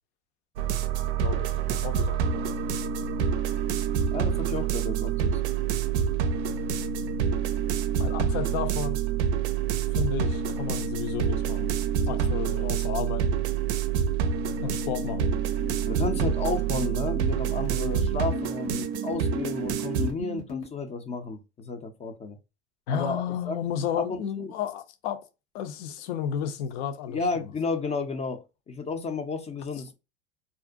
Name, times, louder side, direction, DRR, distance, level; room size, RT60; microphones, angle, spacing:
sound 1, 0.6-20.1, right 8 dB, 80° right, 0.5 m, -27 dB
voice 1, 1.2-2.5 8.0-9.0 9.9-11.7 12.0-13.4 14.6-15.3 22.9-25.2 25.5-27.5, left 9 dB, 70° left, 0.6 m, -32 dB
voice 2, 4.1-5.4 15.9-22.4 22.9-23.6 23.9-24.5 27.1-29.9, left 4 dB, 20° left, 0.4 m, -32 dB
sound 2, 14.6-20.6, left 1 dB, 90° left, 1.2 m, -39 dB
2.5 x 2.1 x 2.4 m
hypercardioid pair, 95°, 34 cm